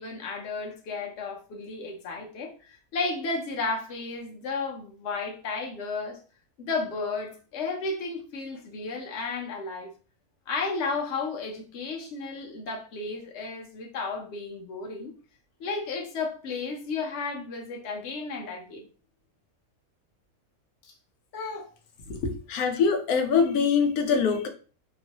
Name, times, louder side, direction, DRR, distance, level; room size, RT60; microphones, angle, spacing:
voice 1, 0.0-6.2 6.6-9.9 10.5-15.1 15.6-18.9 20.8-20.9 21.3-21.7 22.0-22.3, left 3 dB, 55° left, 1.0 m, -33 dB
voice 2, 22.5-24.5, left 6 dB, 90° left, 1.1 m, -23 dB
3.0 x 2.6 x 2.8 m
omnidirectional pair, 1.5 m